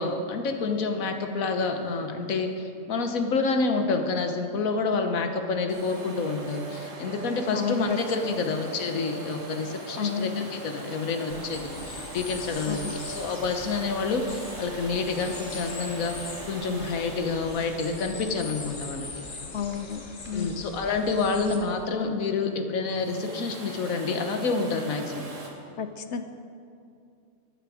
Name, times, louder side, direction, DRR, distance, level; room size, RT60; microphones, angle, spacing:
voice 1, 0.0-19.1 20.3-25.2, left 4 dB, 80° left, 5 dB, 1.4 m, -28 dB
Domestic sounds home sounds, 5.7-20.4 22.8-25.5, right 2 dB, 65° right, 1.9 m, -41 dB
voice 2, 7.5-8.0 8.2-8.6 9.9-10.5 12.7-13.0 19.5-20.6 25.8-26.2, left 7 dB, 65° left, 9 dB, 0.9 m, -31 dB
sound 1, 11.3-21.6, left 3 dB, 40° left, 1.2 m, -41 dB
14.5 x 9.0 x 5.0 m, 2.5 s
omnidirectional pair, 1.4 m